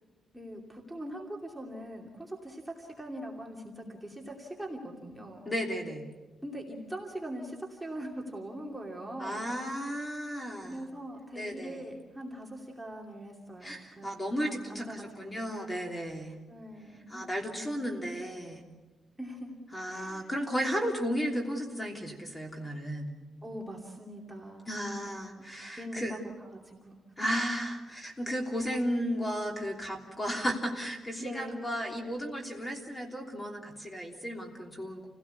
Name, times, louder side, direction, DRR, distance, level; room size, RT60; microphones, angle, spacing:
voice 1, 0.3-5.5 6.4-9.5 10.6-14.1 14.4-15.0 15.2-15.4 16.5-17.8 19.2-19.5 19.9-20.3 23.4-24.7 25.0-25.5 25.8-27.0 31.2-31.6, equal, 5° right, -1 dB, 2.7 m, -42 dB
voice 2, 5.4-6.1 9.2-10.8 11.3-11.9 13.6-16.3 17.1-18.6 19.7-23.1 24.7-26.2 27.2-35.1, equal, 15° left, 1 dB, 3.2 m, -34 dB
28.5 x 17.5 x 8.3 m, 1.2 s
wide cardioid pair, 150°, 0 cm